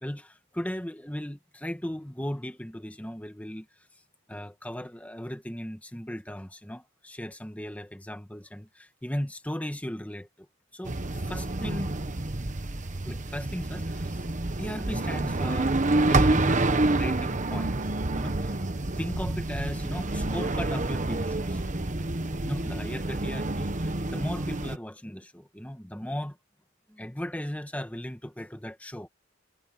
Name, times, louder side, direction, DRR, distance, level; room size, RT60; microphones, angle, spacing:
voice 1, 0.0-3.7 4.3-10.3 10.7-10.9 11.2-11.9 13.0-14.2 14.6-15.8 16.1-17.8 18.1-18.6 19.0-21.6 22.4-26.4 26.9-29.1, equal, 5° left, 1.5 m, -37 dB
sound 1, 10.9-24.8, right 2 dB, 40° right, 1.2 m, -28 dB
head